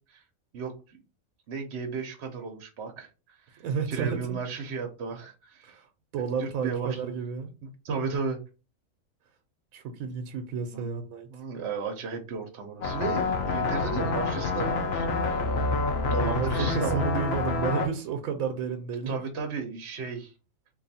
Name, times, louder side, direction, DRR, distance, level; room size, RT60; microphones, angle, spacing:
voice 1, 0.5-1.0 1.5-5.8 6.4-7.1 7.6-8.4 10.7-10.9 11.3-15.7 16.1-17.0 19.1-20.3, right 5 dB, 60° right, 0.9 m, -34 dB
voice 2, 3.6-4.4 5.6-7.5 9.7-11.4 16.3-19.2, right 6 dB, 85° right, 1.0 m, -32 dB
sound 1, 12.8-17.9, left 3 dB, 60° left, 0.8 m, -27 dB
3.0 x 2.6 x 4.0 m
omnidirectional pair, 1.4 m